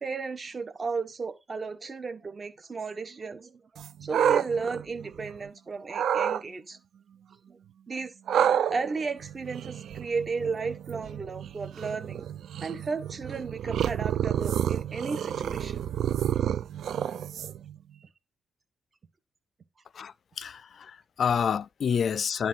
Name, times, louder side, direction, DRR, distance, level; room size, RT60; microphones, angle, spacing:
voice 1, 0.0-6.8 7.5-7.6 7.9-12.3 12.6-15.8 18.0-18.1, right 4 dB, 35° right, 1.5 m, -34 dB
sound 1, 3.8-5.5 5.9-6.4 8.3-17.8, right 9 dB, 75° right, 0.5 m, -29 dB
voice 2, 19.9-22.5, left 7 dB, 55° left, 0.4 m, -28 dB
10.5 x 3.8 x 5.7 m
cardioid pair, 125°, 0 cm